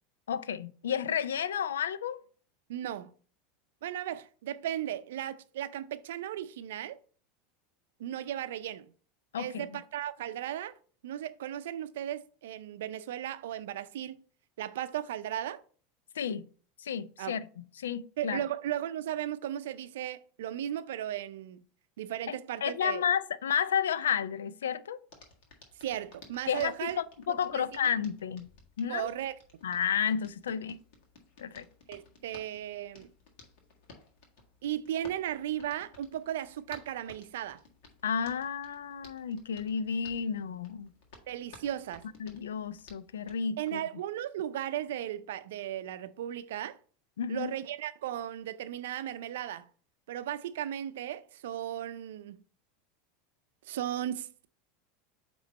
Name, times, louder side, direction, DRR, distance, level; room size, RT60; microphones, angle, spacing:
voice 1, 0.3-2.2 9.3-9.7 16.2-16.5 16.8-17.5 17.8-18.4 22.3-25.0 26.5-28.5 28.8-29.1 29.6-30.8 31.4-31.7 38.0-40.9 42.2-43.8 47.2-47.5, left 7 dB, 80° left, 0.4 m, -32 dB
voice 2, 2.7-3.1 3.8-7.0 8.0-8.9 9.4-10.7 11.0-14.2 14.6-15.6 17.2-17.4 18.2-21.6 22.0-23.0 25.8-27.0 27.3-27.7 28.9-29.4 31.9-33.1 34.6-37.6 41.3-42.1 43.6-46.8 47.3-49.7 50.1-52.4 53.6-54.5, right 11 dB, 70° right, 0.5 m, -36 dB
Hands, 25.1-43.4, left 3 dB, 60° left, 1.7 m, -57 dB
8.4 x 3.1 x 4.1 m
hypercardioid pair, 85°, 0 cm